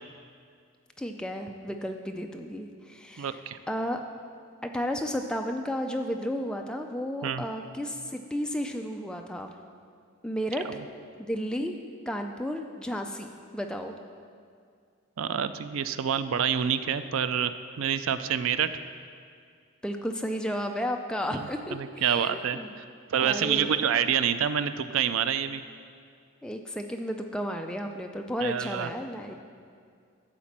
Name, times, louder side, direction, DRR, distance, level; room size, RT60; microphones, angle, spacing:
voice 1, 1.0-3.4 3.7-4.0 4.6-9.5 10.2-10.6 11.2-11.8 12.1-13.9 19.8-22.7 23.2-23.7 26.4-29.4, equal, 5° left, 3 dB, 0.4 m, -33 dB
voice 2, 3.2-3.6 7.2-7.4 10.7-10.8 15.2-18.7 21.3-22.8 23.1-25.6 28.4-28.9, right 8 dB, 70° right, 12 dB, 0.4 m, -27 dB
11.5 x 4.2 x 7.3 m, 2.2 s
head